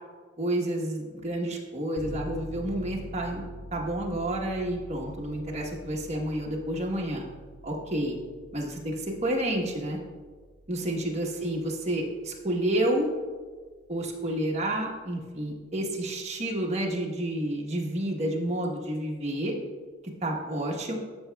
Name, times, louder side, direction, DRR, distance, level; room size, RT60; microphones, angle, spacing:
voice 1, 0.4-3.4 3.7-7.2 7.6-8.2 8.5-10.0 10.7-13.1 13.9-19.5 20.2-20.9, right 1 dB, 35° right, -1 dB, 1.1 m, -30 dB
sound 1, 2.0-14.5 14.8-14.9, equal, 65° left, 2.3 m, -46 dB
13.0 x 6.0 x 2.3 m, 1.4 s
head